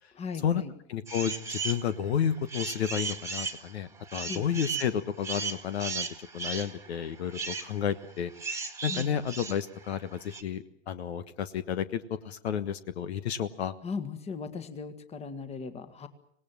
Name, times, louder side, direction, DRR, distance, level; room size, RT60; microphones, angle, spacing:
voice 1, 0.1-0.7 4.3-4.4 8.9-9.1 13.8-16.1, left 5 dB, 20° left, 9 dB, 1.7 m, -37 dB
voice 2, 0.9-6.1 6.3-8.3 8.8-13.7, left 8 dB, 65° left, 13 dB, 1.4 m, -31 dB
sound 1, 1.1-1.8 2.3-10.4, right 5 dB, 10° right, 1.9 m, -36 dB
25.5 x 19.0 x 7.6 m, 0.67 s
hypercardioid pair, 115°, 35 cm